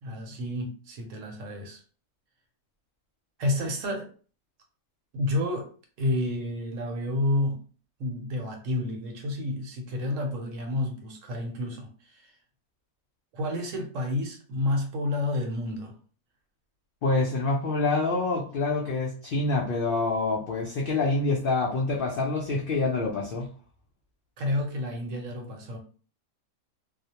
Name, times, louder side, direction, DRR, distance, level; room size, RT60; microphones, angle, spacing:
voice 1, 0.0-1.8 3.4-4.1 5.1-5.7 6.0-7.6 8.0-12.3 13.3-15.9 24.4-25.8, left 2 dB, 70° right, 2 dB, 1.0 m, -30 dB
voice 2, 17.0-23.5, left 3 dB, 75° left, -2 dB, 0.5 m, -26 dB
2.4 x 2.0 x 2.7 m, 0.40 s
omnidirectional pair, 1.5 m